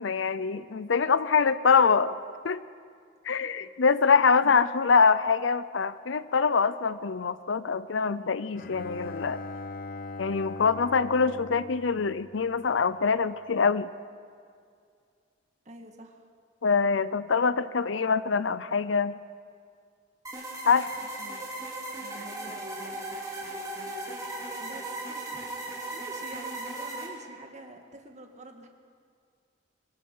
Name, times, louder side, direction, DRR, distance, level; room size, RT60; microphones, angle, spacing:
voice 1, 0.0-2.2 2.4-2.6 3.2-9.4 10.2-13.9 16.6-19.2 20.7-20.9, left 5 dB, 80° left, 15 dB, 0.6 m, -24 dB
Bowed string instrument, 8.5-12.9, left 3 dB, 50° left, 0.9 m, -41 dB
voice 2, 15.7-16.3 21.2-21.4 22.0-23.1 24.6-25.4 25.9-28.7, right 1 dB, 35° right, 3 dB, 1.9 m, -47 dB
sound 1, 20.2-27.1, right 2 dB, 20° right, 3.8 m, -37 dB
26.5 x 23.0 x 5.6 m, 2.2 s
head